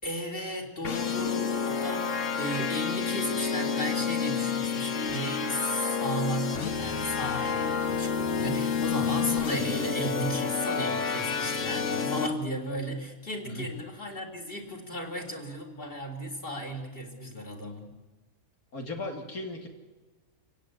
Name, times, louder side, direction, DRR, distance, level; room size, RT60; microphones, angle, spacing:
voice 1, 0.0-17.9, equal, 35° left, 1 dB, 3.8 m, -35 dB
sound 1, 0.8-12.3, left 6 dB, 55° left, 1.6 m, -29 dB
voice 2, 18.7-19.7, left 1 dB, 75° left, 1 dB, 3.4 m, -36 dB
27.0 x 17.0 x 9.7 m, 1.2 s
omnidirectional pair, 1.6 m